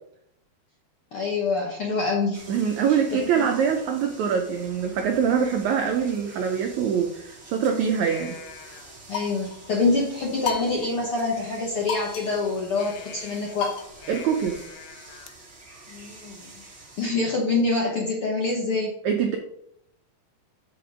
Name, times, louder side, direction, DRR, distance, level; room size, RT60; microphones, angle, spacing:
voice 1, 1.1-2.4 2.9-3.5 9.1-13.7 15.9-16.5 17.0-18.9, left 3 dB, 65° left, -2 dB, 1.3 m, -26 dB
sound 1, 2.3-17.1, right 3 dB, 30° right, 1.3 m, -47 dB
voice 2, 2.5-8.4 14.1-14.6 19.0-19.4, right 7 dB, 85° right, 4 dB, 1.6 m, -24 dB
sound 2, 8.1-9.7 10.4-11.3 11.5-11.6 11.9-15.3, left 6 dB, 80° left, 1.7 m, -36 dB
7.8 x 5.6 x 4.9 m, 0.76 s
omnidirectional pair, 4.1 m